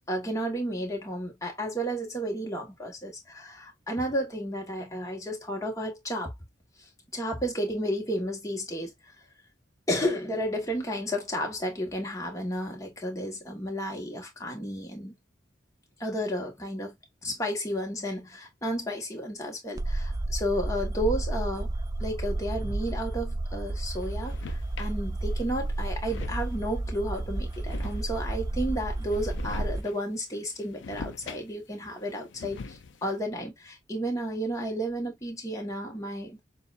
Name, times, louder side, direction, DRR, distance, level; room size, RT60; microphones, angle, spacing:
voice 1, 0.1-6.3 7.1-8.9 9.9-15.2 16.0-17.0 17.2-21.7 22.0-36.4, equal, 15° left, 1.3 m, -32 dB
sound 1, 19.8-29.8, right 2 dB, 20° right, 0.3 m, -32 dB
sound 2, 24.0-25.0 25.5-25.6 25.8-26.7 27.5-28.4 29.0-30.0 30.3-31.8 32.1-33.1, left 4 dB, 75° left, 0.5 m, -43 dB
6.8 x 2.4 x 2.5 m
head